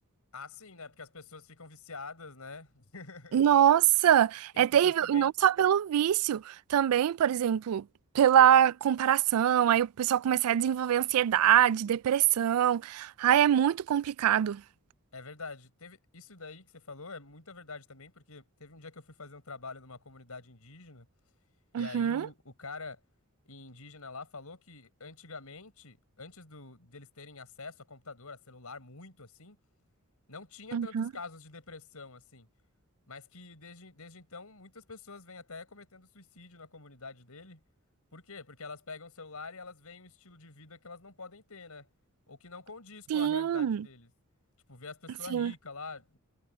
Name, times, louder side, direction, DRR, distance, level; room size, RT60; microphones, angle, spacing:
voice 1, 0.3-3.4 4.5-5.3 15.1-21.1 21.7-23.0 23.4-29.6 30.3-32.5 33.1-37.6 38.1-41.9 42.3-44.1 44.7-46.2, left 4 dB, 90° left, 4.6 m, -46 dB
voice 2, 3.3-7.8 8.1-14.6 21.7-22.3 30.7-31.1 43.1-43.8 45.3-45.5, right 10 dB, 80° right, 0.3 m, -24 dB
head